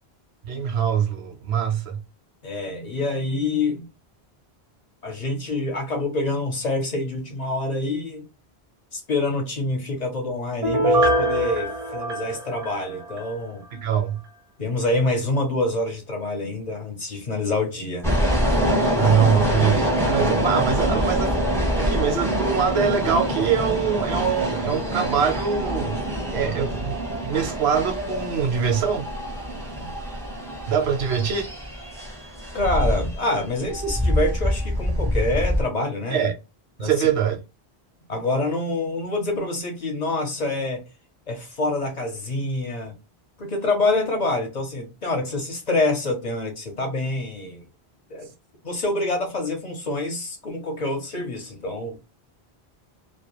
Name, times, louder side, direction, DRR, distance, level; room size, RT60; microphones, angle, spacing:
voice 1, 0.4-2.0 13.7-14.2 18.9-21.5 21.8-26.0 26.3-27.0 27.2-29.1 30.7-31.5 36.1-36.3 36.8-37.4, right 7 dB, 90° right, 0.9 m, -23 dB
voice 2, 2.4-3.9 5.0-8.3 8.9-13.6 14.6-18.1 26.4-26.6 29.7-29.9 32.5-36.3 36.8-36.9 38.1-40.8 41.3-42.9 43.4-47.7 48.1-48.3 48.6-52.0, left 2 dB, 45° left, 0.7 m, -26 dB
Piano, 10.6-13.3 13.7-13.8, right 1 dB, 50° right, 0.5 m, -23 dB
sound 1, 18.0-35.6, equal, 5° left, 0.5 m, -25 dB
2.2 x 2.1 x 2.9 m
omnidirectional pair, 1.0 m